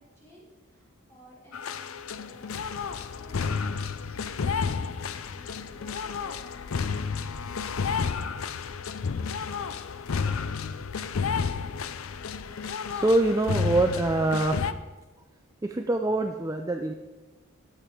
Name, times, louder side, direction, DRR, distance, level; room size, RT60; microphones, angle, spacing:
voice 1, 0.0-6.7, left 1 dB, 15° left, -6 dB, 3.7 m, -55 dB
sound 1, 1.5-14.7, left 5 dB, 70° left, 0.5 m, -31 dB
voice 2, 12.9-14.6 15.6-16.9, right 2 dB, 15° right, 5 dB, 0.4 m, -24 dB
12.5 x 8.1 x 4.5 m, 1.2 s
head